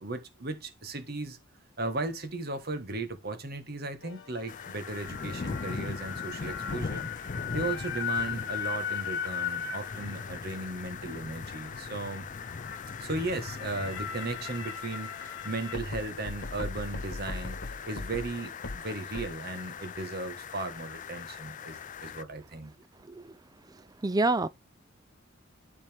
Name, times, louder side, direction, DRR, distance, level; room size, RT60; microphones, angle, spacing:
voice 1, 0.0-1.4 1.8-7.1 7.5-12.3 13.0-22.7, right 2 dB, 50° right, 1.5 m, -36 dB
sound 1, 4.0-19.3, left 6 dB, 60° left, 1.7 m, -38 dB
sound 2, 4.5-22.2, left 5 dB, 40° left, 0.4 m, -40 dB
voice 2, 24.0-24.5, right 2 dB, 20° right, 0.5 m, -26 dB
12.0 x 4.3 x 3.5 m
head